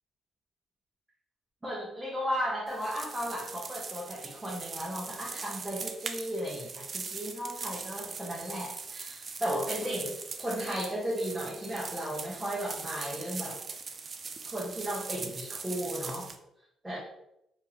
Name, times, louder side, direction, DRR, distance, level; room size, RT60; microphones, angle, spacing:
voice 1, 1.6-13.6 14.4-16.3 16.8-17.0, equal, 10° right, -6 dB, 1.0 m, -35 dB
sound 1, 2.7-16.4, right 4 dB, 40° right, 0.4 m, -41 dB
2.9 x 2.6 x 4.0 m, 0.81 s
cardioid pair, 90°, 0 cm